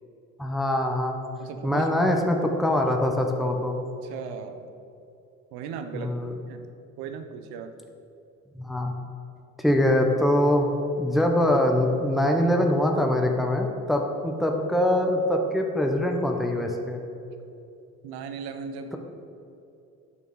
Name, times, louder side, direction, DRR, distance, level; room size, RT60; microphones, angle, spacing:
voice 1, 0.4-1.2 1.6-3.8 5.9-6.3 8.5-8.9 9.6-10.7 11.0-17.0, left 1 dB, ahead, 2 dB, 1.1 m, -23 dB
voice 2, 1.4-1.9 4.0-4.7 5.5-6.1 6.5-6.7 7.0-7.7 14.3-14.4 18.0-19.0, right 6 dB, 65° right, 8 dB, 0.9 m, -37 dB
9.5 x 5.4 x 6.4 m, 2.7 s
hypercardioid pair, 50°, 40 cm